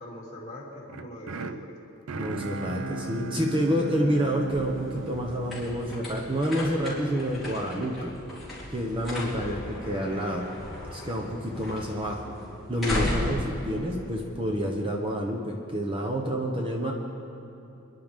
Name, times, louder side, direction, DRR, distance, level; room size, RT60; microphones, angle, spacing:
voice 1, 0.0-1.8 9.1-9.7, left 1 dB, 30° left, -4 dB, 3.2 m, -41 dB
sound 1, 0.9-7.0, right 3 dB, 70° right, 0.5 m, -37 dB
voice 2, 2.2-8.1 8.7-9.6 9.9-10.4 10.9-12.3 12.7-16.9, equal, 25° right, -1 dB, 1.0 m, -28 dB
sound 2, 4.2-14.8, left 1 dB, ahead, 4.4 m, -36 dB
27.5 x 11.0 x 3.7 m, 3.0 s
head